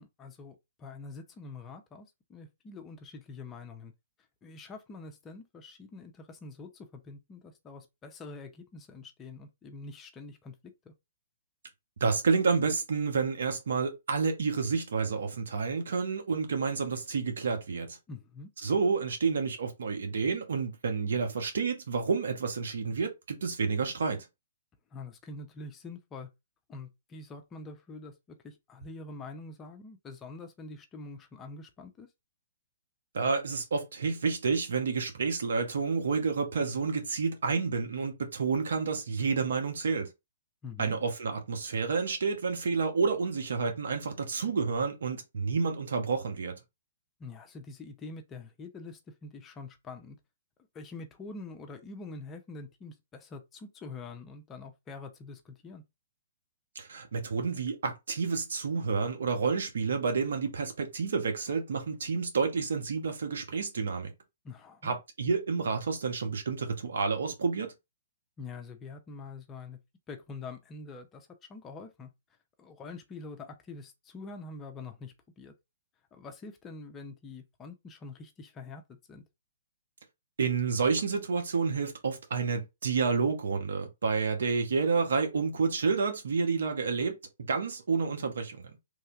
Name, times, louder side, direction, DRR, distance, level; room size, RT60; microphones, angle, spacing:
voice 1, 0.0-3.9 4.4-10.5 10.8-10.9 18.1-18.5 24.9-26.3 26.7-32.1 40.6-41.0 47.2-50.2 50.7-55.8 64.4-64.9 68.4-69.8 70.1-72.1 72.6-75.5 76.1-78.8 79.1-79.2, left 3 dB, 20° left, 0.7 m, -45 dB
voice 2, 12.0-18.0 18.6-24.2 33.1-40.1 40.8-46.6 56.7-64.1 64.8-67.7 80.4-87.1 87.5-88.7, right 5 dB, 75° right, 1.0 m, -29 dB
3.2 x 2.7 x 2.5 m
hypercardioid pair, 130°, 0 cm